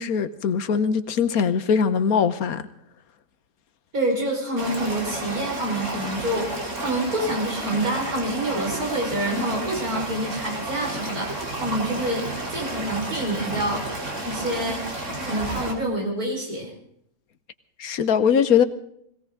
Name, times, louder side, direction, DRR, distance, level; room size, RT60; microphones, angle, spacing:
voice 1, 0.0-2.6 17.8-18.6, left 7 dB, 75° left, 13 dB, 1.4 m, -21 dB
voice 2, 3.9-13.9 14.2-14.9 15.2-16.7, right 1 dB, 75° right, -2 dB, 5.7 m, -27 dB
sound 1, 4.6-15.7, right 1 dB, 55° right, 3.6 m, -31 dB
21.0 x 17.5 x 3.8 m, 0.70 s
omnidirectional pair, 1.5 m